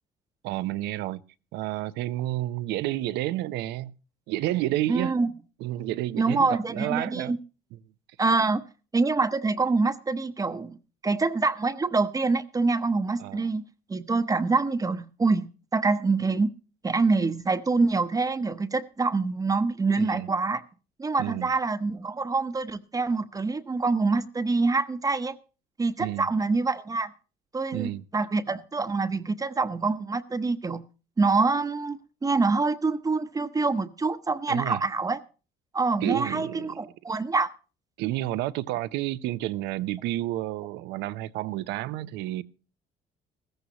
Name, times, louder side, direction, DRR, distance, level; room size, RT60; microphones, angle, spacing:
voice 1, 0.4-1.2 1.5-3.9 4.3-5.1 5.6-7.4 13.2-13.5 20.0-20.3 21.2-21.5 26.0-26.3 27.7-28.0 34.5-34.8 36.0-36.8 38.0-42.4, right 15 dB, 90° right, 0.7 m, -30 dB
voice 2, 4.9-5.3 6.2-7.4 8.2-8.6 8.9-10.8 11.0-13.6 13.9-16.5 16.8-20.6 21.0-25.3 25.8-27.1 27.5-30.8 31.2-35.2 35.7-37.5, right 3 dB, 20° right, 0.8 m, -25 dB
15.5 x 14.5 x 2.9 m
cardioid pair, 110°, 17 cm